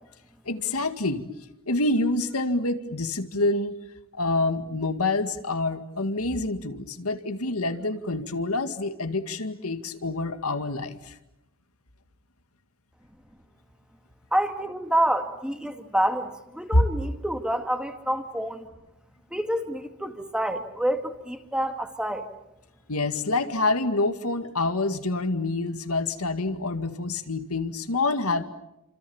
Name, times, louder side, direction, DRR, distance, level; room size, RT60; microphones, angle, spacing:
voice 1, 0.5-1.3 1.7-3.7 4.1-11.1 16.7-16.8 22.9-28.4, left 2 dB, 90° left, 9 dB, 2.1 m, -27 dB
voice 2, 14.3-18.7 19.3-22.3, right 1 dB, 5° right, 6 dB, 2.1 m, -27 dB
29.5 x 26.5 x 7.2 m, 0.91 s
head